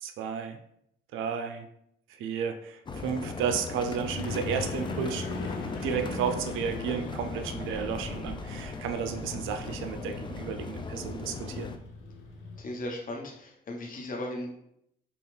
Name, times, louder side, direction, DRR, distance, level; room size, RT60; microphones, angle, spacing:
voice 1, 0.0-0.6 1.1-1.7 2.1-11.7, right 7 dB, 85° right, 7 dB, 0.5 m, -33 dB
sound 1, 2.9-11.8, left 4 dB, 25° left, 0.4 m, -38 dB
sound 2, 4.0-12.6, left 3 dB, 85° left, 0.9 m, -40 dB
voice 2, 12.6-14.5, left 1 dB, 45° left, 0 dB, 1.1 m, -36 dB
5.3 x 2.4 x 3.2 m, 0.73 s
cardioid pair, 90°, 20 cm